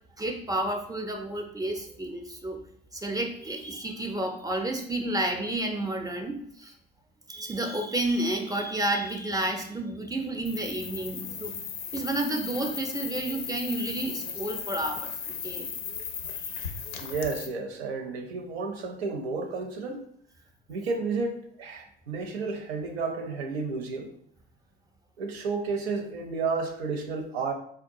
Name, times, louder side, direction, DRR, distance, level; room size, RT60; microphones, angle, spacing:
voice 1, 0.2-2.6 2.9-6.7 7.3-11.6 11.9-15.1 15.4-15.7, right 1 dB, 10° right, 3 dB, 0.4 m, -31 dB
sound 1, 10.4-17.5, left 7 dB, 80° left, 0.5 m, -36 dB
voice 2, 17.0-20.0 20.7-24.1 25.2-27.5, right 4 dB, 85° right, 3 dB, 0.6 m, -32 dB
3.7 x 2.3 x 2.6 m, 0.67 s
hypercardioid pair, 65°, 31 cm